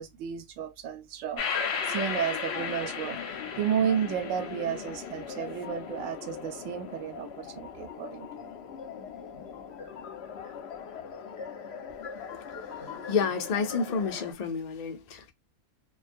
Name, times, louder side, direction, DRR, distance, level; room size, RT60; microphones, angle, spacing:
voice 1, 0.0-1.4 1.9-8.5, right 9 dB, 70° right, 0.9 m, -32 dB
sound 1, 1.4-14.3, left 6 dB, 60° left, 0.7 m, -37 dB
voice 2, 13.1-15.3, left 5 dB, 85° left, 0.3 m, -29 dB
2.3 x 2.2 x 2.5 m
omnidirectional pair, 1.5 m